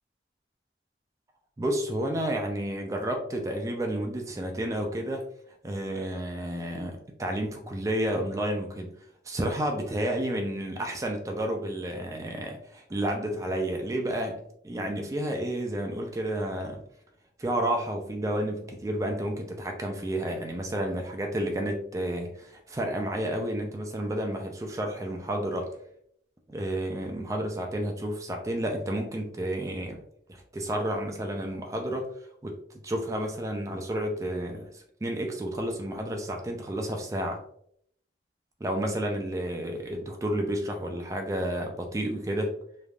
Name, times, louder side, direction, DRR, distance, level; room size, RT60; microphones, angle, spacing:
voice 1, 1.6-5.2 5.6-8.9 9.3-16.8 17.4-25.7 26.5-30.0 30.3-32.1 32.4-32.6 32.8-37.4 38.6-42.5, right 1 dB, 20° right, 2 dB, 0.3 m, -31 dB
3.3 x 2.4 x 2.3 m, 0.69 s
head